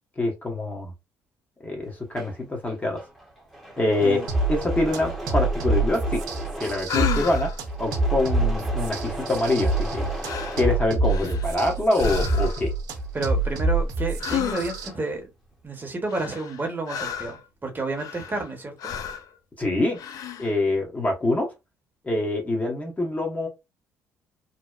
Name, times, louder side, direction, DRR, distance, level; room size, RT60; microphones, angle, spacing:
voice 1, 0.2-0.9 1.6-3.0 3.8-4.2 4.5-6.2 6.6-7.5 7.8-10.1 10.6-12.7 19.6-20.0 20.4-21.5 22.0-23.5, left 2 dB, 25° left, 1.0 m, -25 dB
Engine / Mechanisms, 1.9-11.5 11.8-14.2 14.5-15.2, right 1 dB, 5° left, 0.9 m, -37 dB
sound 1, 4.3-14.9, right 2 dB, 70° right, 0.5 m, -26 dB
sound 2, 6.9-7.6 9.7-10.0 10.2-10.7 11.1-11.6 12.0-12.7 14.2-14.9 16.1-17.4 17.9-18.5 18.8-19.3 19.9-20.5, left 7 dB, 60° left, 0.4 m, -31 dB
voice 2, 13.1-15.3 15.6-18.9, right 3 dB, 30° right, 0.9 m, -30 dB
2.8 x 2.0 x 2.3 m
supercardioid pair, 70°, 7 cm